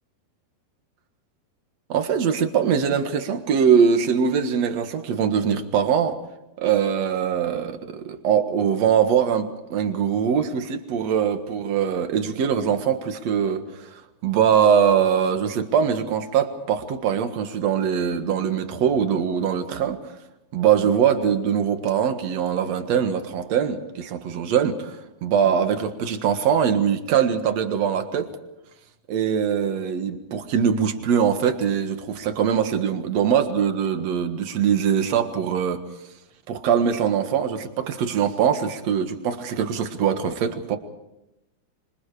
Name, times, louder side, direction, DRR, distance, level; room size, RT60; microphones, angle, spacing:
voice 1, 1.9-6.2 6.6-13.6 14.2-20.0 20.5-28.3 29.1-35.8 36.5-40.8, right 7 dB, 55° right, 7 dB, 2.2 m, -22 dB
26.5 x 26.0 x 5.0 m, 0.92 s
omnidirectional pair, 4.6 m